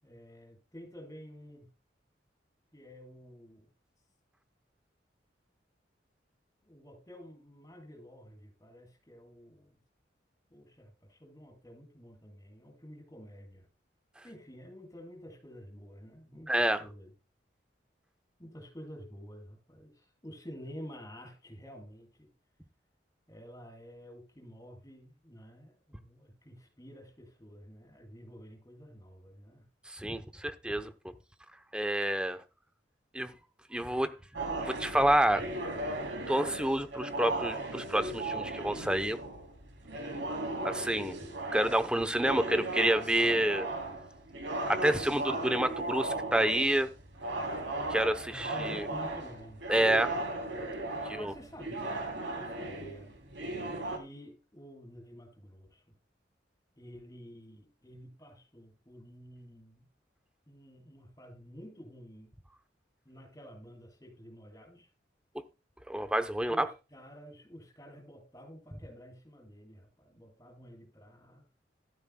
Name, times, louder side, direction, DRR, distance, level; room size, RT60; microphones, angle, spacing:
voice 1, 0.0-1.7 2.7-3.7 6.6-9.8 10.5-13.7 14.2-17.1 18.4-22.3 23.3-29.7 48.2-49.6 51.0-53.2 53.9-55.8 56.8-59.8 60.5-62.3 63.0-64.9 66.5-71.5, equal, 20° left, 7.3 m, -50 dB
voice 2, 16.5-16.8 29.9-30.9 31.7-32.4 33.1-33.3 33.7-34.1 34.7-35.4 36.3-39.2 40.6-41.2 41.5-43.7 44.7-46.9 47.9-48.9 49.7-50.1 51.2-51.3 65.9-66.7, right 1 dB, 5° right, 0.8 m, -28 dB
sound 1, 34.3-54.0, right 2 dB, 90° right, 3.2 m, -37 dB
14.0 x 12.0 x 2.3 m
head